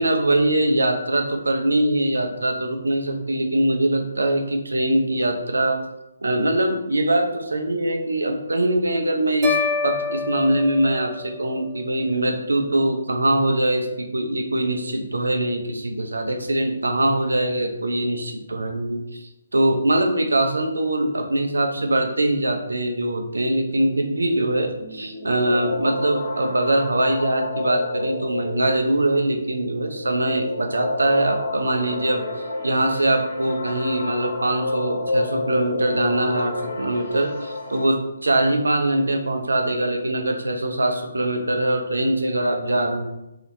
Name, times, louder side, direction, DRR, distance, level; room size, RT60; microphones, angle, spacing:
voice 1, 0.0-5.8 6.2-43.1, right 1 dB, 85° right, 4 dB, 0.5 m, -22 dB
sound 1, 9.4-11.7, left 5 dB, 25° right, 0.6 m, -27 dB
sound 2, 24.3-37.9, left 2 dB, 45° left, 1.1 m, -30 dB
2.8 x 2.7 x 3.2 m, 0.89 s
figure-of-eight pair, 150°, 0 cm